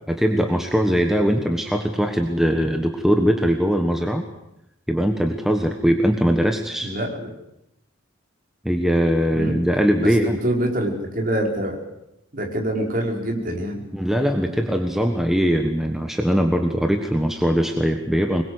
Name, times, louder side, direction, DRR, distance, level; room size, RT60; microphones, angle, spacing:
voice 1, 0.1-4.2 4.9-6.9 8.6-10.4 13.9-18.4, equal, ahead, 4 dB, 1.4 m, -21 dB
voice 2, 6.8-7.3 9.3-9.6 10.0-11.8 12.3-13.8, right 1 dB, 40° right, 1 dB, 4.9 m, -25 dB
25.0 x 21.5 x 8.1 m, 0.85 s
head